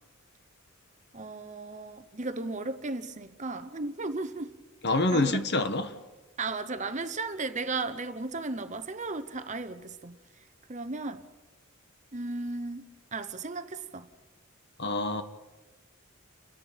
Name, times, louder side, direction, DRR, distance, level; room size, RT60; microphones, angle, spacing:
voice 1, 1.1-4.5 5.1-5.4 6.4-10.1 10.7-11.2 12.1-14.1, right 3 dB, 35° right, 1.0 m, -35 dB
voice 2, 4.8-5.9 14.8-15.2, left 2 dB, 55° left, 1.4 m, -26 dB
29.0 x 10.5 x 9.2 m
head